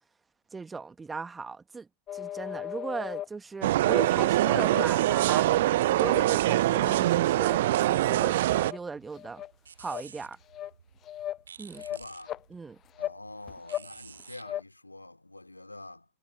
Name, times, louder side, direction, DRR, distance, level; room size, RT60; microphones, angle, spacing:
voice 1, 0.5-1.9 2.1-9.4 9.8-10.4 11.6-11.8 12.5-12.8, right 4 dB, 15° right, 1.1 m, -38 dB
sound 1, 2.1-3.3 3.8-4.1 4.5-5.6 6.0-6.3 6.6-7.0 7.4-7.6 8.0-8.3 8.7-8.8 9.1-9.5 9.8-10.0 10.5-10.7 11.0-11.4 11.8-12.4 13.0-13.2 13.5-13.9 14.2-14.6, left 12 dB, 30° left, 0.3 m, -37 dB
sound 2, 3.6-8.7, right 15 dB, 55° right, 0.6 m, -24 dB
sound 3, 7.8-14.4, right 6 dB, 70° right, 2.6 m, -52 dB
voice 2, 11.8-12.4 13.0-16.1, left 2 dB, 85° left, 2.8 m, -46 dB
figure-of-eight pair, 90°, 0 cm